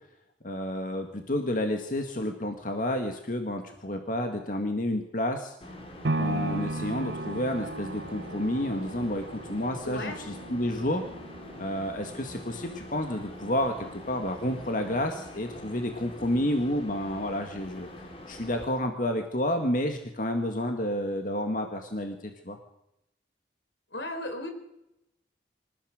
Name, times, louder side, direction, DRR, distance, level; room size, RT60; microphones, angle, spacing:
voice 1, 0.4-5.5 6.2-11.0 11.6-17.9 18.3-22.6, left 1 dB, 50° left, 4 dB, 2.0 m, -30 dB
sound 1, 5.6-18.7, left 1 dB, 30° left, 2.9 m, -45 dB
sound 2, 6.0-14.2 14.6-14.7, right 2 dB, 75° right, 0.9 m, -36 dB
voice 2, 9.9-10.2 23.9-24.5, left 1 dB, 80° left, 6 dB, 4.3 m, -35 dB
26.5 x 15.0 x 6.6 m, 0.83 s
head